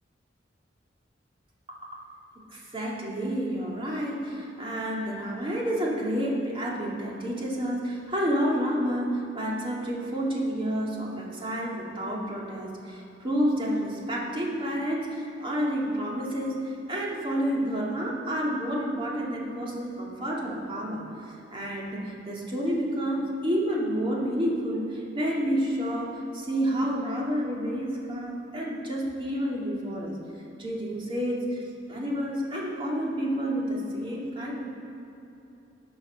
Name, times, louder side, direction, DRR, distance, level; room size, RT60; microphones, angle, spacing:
voice 1, 1.7-2.0 2.5-30.1 30.6-31.6 31.9-34.6, equal, 30° right, -4 dB, 2.5 m, -29 dB
18.0 x 7.1 x 6.5 m, 3.0 s
head